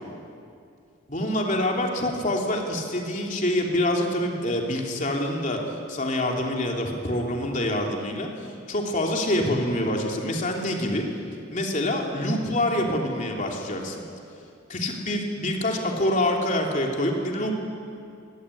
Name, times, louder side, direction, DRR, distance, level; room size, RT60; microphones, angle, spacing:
voice 1, 1.1-5.6 5.9-8.3 8.7-11.1 11.5-14.0 14.7-17.5, left 1 dB, 35° left, 0 dB, 3.3 m, -26 dB
23.0 x 18.0 x 10.0 m, 2.5 s
head